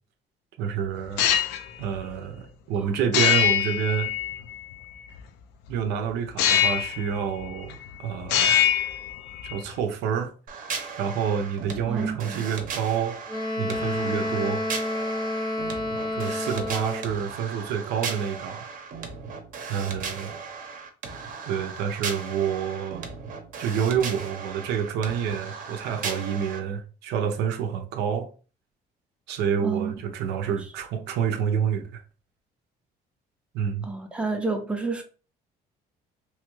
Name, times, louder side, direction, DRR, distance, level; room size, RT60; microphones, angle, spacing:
voice 1, 0.6-1.3 1.8-4.1 5.7-8.6 9.5-10.3 11.0-13.2 13.6-14.6 16.1-18.7 19.7-20.4 21.5-23.1 23.6-28.3 29.3-32.0 33.5-33.9, right 8 dB, 85° right, 0.6 m, -28 dB
sound 1, 1.0-1.6 3.1-4.6 6.4-7.1 7.4-7.9 8.2-9.6, left 10 dB, 85° left, 0.5 m, -23 dB
sound 2, 10.5-26.6, right 5 dB, 50° right, 0.7 m, -37 dB
voice 2, 11.9-12.5 29.6-30.0 33.8-35.0, right 4 dB, 5° right, 0.5 m, -29 dB
Wind instrument woodwind instrument, 13.3-17.2, left 1 dB, 25° left, 0.7 m, -29 dB
3.1 x 2.3 x 3.0 m
cardioid pair, 110°, 17 cm